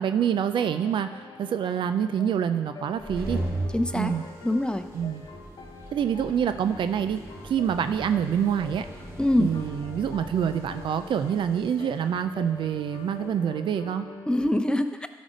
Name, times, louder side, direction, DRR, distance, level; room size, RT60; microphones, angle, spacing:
voice 1, 0.0-3.4 3.9-4.2 4.9-5.2 5.9-8.9 9.4-14.1, right 8 dB, 80° right, 10 dB, 0.4 m, -26 dB
sound 1, 0.6-14.5, left 4 dB, 80° left, 0.8 m, -44 dB
sound 2, 2.8-13.3, right 1 dB, 35° right, 2.5 m, -39 dB
voice 2, 3.7-4.1 4.4-4.8 9.2-9.5 14.3-15.1, left 1 dB, 10° left, 8 dB, 0.7 m, -24 dB
12.0 x 5.2 x 5.1 m, 1.5 s
supercardioid pair, 45°, 8 cm